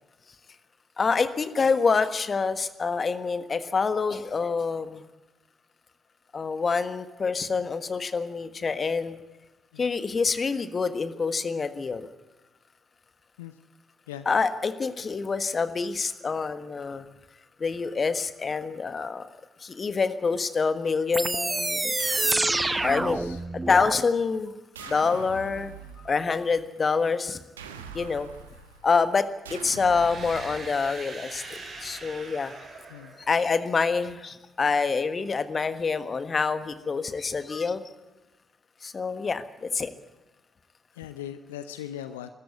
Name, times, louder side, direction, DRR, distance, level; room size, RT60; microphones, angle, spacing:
voice 1, 1.0-5.0 6.3-9.2 9.8-12.1 14.2-17.0 17.6-19.3 19.6-21.9 22.8-23.2 23.7-24.5 24.8-25.7 26.0-27.4 27.9-28.3 28.8-32.5 33.3-37.9 38.8-39.9, left 5 dB, 35° left, 11 dB, 1.4 m, -26 dB
sound 1, 21.1-24.0, right 2 dB, 15° right, 0.9 m, -27 dB
sound 2, 21.6-23.6 24.7-26.3 27.6-29.0 29.4-31.0, right 6 dB, 80° right, 1.3 m, -44 dB
voice 2, 22.9-23.4 32.9-33.1 40.9-42.3, left 10 dB, 75° left, 11 dB, 0.6 m, -40 dB
sound 3, 29.8-33.8, right 3 dB, 55° right, 7.2 m, -42 dB
22.5 x 14.0 x 9.4 m, 1.1 s
figure-of-eight pair, 45°, 0 cm